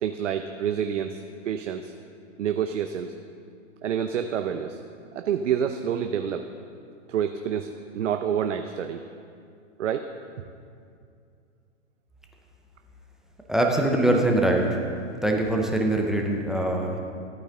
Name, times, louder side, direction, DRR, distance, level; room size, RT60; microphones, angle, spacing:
voice 1, 0.0-1.9 2.4-3.1 3.8-4.8 5.1-6.5 7.1-9.0 9.8-10.1 10.4-10.5, right 8 dB, 70° right, 7 dB, 0.6 m, -28 dB
voice 2, 13.5-14.8 15.2-17.0, right 1 dB, ahead, 1 dB, 0.6 m, -23 dB
14.0 x 9.0 x 3.7 m, 2.4 s
hypercardioid pair, 120°, 38 cm